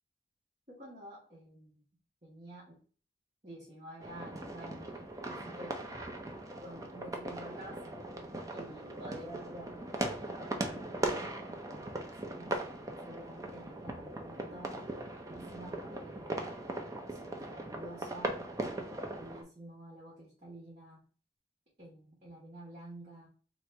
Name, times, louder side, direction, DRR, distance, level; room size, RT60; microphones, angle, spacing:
voice 1, 0.7-1.8 2.2-2.8 3.4-5.8 6.6-7.8 8.5-12.6 13.0-14.9 15.3-18.4 18.9-21.0 21.8-23.3, right 1 dB, 40° right, -5 dB, 1.4 m, -50 dB
sound 1, 4.0-19.4, right 1 dB, 20° right, 0.6 m, -39 dB
3.0 x 2.9 x 4.5 m, 0.41 s
head